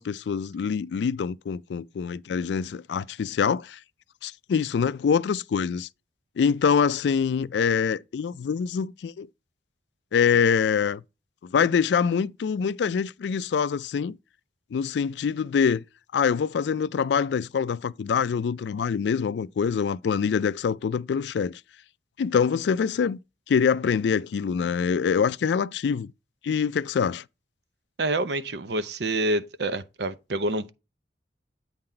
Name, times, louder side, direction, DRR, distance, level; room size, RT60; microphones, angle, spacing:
voice 1, 0.0-3.8 4.2-5.9 6.4-9.3 10.1-11.0 11.5-14.2 14.7-15.8 16.1-21.6 22.2-23.2 23.5-26.1 26.4-27.2, left 6 dB, 70° left, 0.3 m, -25 dB
voice 2, 28.0-30.7, right 2 dB, 70° right, 0.7 m, -27 dB
8.6 x 3.9 x 4.3 m
head